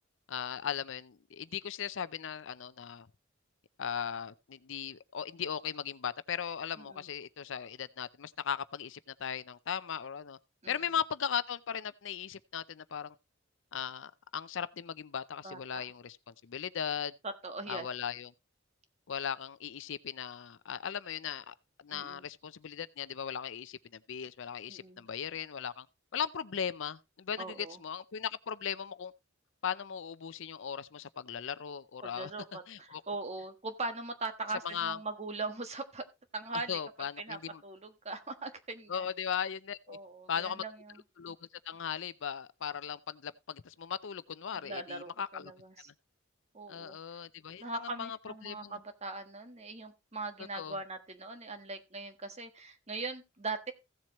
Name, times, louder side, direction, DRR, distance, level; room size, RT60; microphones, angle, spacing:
voice 1, 0.3-3.1 3.8-10.4 10.7-13.1 13.7-17.1 17.7-18.3 19.1-21.5 21.8-25.9 26.1-29.1 29.6-32.3 32.7-33.0 34.6-35.0 36.7-37.6 38.9-40.0 40.3-40.6 41.2-41.4 41.7-45.5 46.7-48.7 50.5-50.8, left 8 dB, 70° left, 0.5 m, -38 dB
voice 2, 6.8-7.1 10.6-10.9 15.4-15.8 17.2-17.9 21.9-22.3 24.7-25.0 27.4-27.8 32.0-36.0 36.3-36.8 37.2-39.1 39.9-41.0 44.5-45.9 46.5-47.0 47.6-53.7, right 3 dB, 35° right, 1.4 m, -41 dB
15.5 x 7.5 x 3.0 m
head